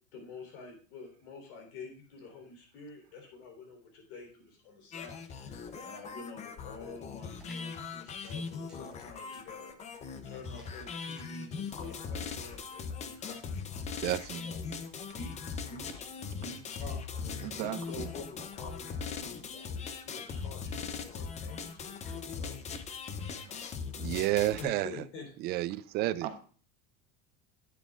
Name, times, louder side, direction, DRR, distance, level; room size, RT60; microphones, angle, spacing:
voice 1, 0.1-9.7 10.2-13.4 14.3-14.7 15.1-22.6 23.4-23.7 24.6-25.3 26.2-26.4, left 4 dB, 70° left, 3 dB, 3.8 m, -48 dB
sound 1, 4.9-24.6, left 5 dB, 25° left, 0.6 m, -40 dB
sound 2, 7.4-12.5, right 3 dB, 5° right, 1.3 m, -62 dB
voice 2, 14.0-14.4 24.0-24.9 25.4-26.3, right 15 dB, 35° right, 15 dB, 0.4 m, -30 dB
voice 3, 17.4-18.1 26.2-26.4, right 10 dB, 65° right, 5 dB, 1.3 m, -37 dB
9.9 x 9.2 x 2.4 m, 0.42 s
supercardioid pair, 150°, 29 cm